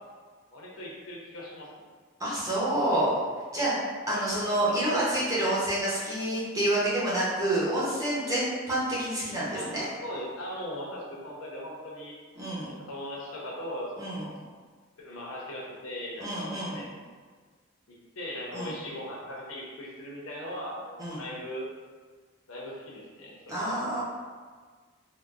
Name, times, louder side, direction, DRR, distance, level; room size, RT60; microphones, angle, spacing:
voice 1, 0.5-1.9 4.1-4.3 9.5-12.2 12.6-14.4 15.0-17.0 17.9-21.7 22.5-23.6, equal, 90° left, -3 dB, 0.7 m, -39 dB
voice 2, 2.2-3.1 3.5-9.8 12.4-12.7 14.0-14.2 16.2-16.8 18.5-18.7 21.0-21.2 23.5-24.0, right 1 dB, 15° right, -9 dB, 0.7 m, -28 dB
3.7 x 2.0 x 2.4 m, 1.5 s
head